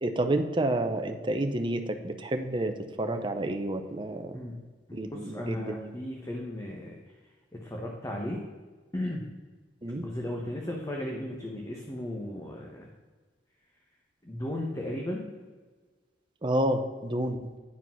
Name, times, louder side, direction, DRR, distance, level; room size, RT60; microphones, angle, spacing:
voice 1, 0.0-4.4 4.9-6.0 9.8-10.0 16.4-17.4, right 1 dB, 30° right, 6 dB, 0.7 m, -29 dB
voice 2, 4.9-7.0 7.5-8.4 8.9-9.3 10.0-12.9 14.2-15.3, left 1 dB, 20° left, -1 dB, 1.0 m, -35 dB
9.6 x 5.0 x 5.7 m, 1.4 s
head